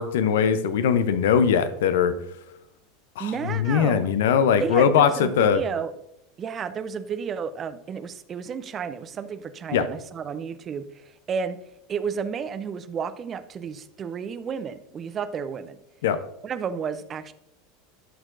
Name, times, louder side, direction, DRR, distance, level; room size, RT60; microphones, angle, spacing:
voice 1, 0.0-2.2 3.2-5.6 9.7-9.9 16.0-16.2, left 7 dB, 65° left, 11 dB, 0.6 m, -21 dB
voice 2, 3.2-4.1 4.6-5.9 6.4-10.9 11.3-11.6 11.9-15.8 16.4-17.3, right 6 dB, 30° right, 13 dB, 0.5 m, -32 dB
11.0 x 6.2 x 2.5 m, 0.83 s
figure-of-eight pair, 80°, 0 cm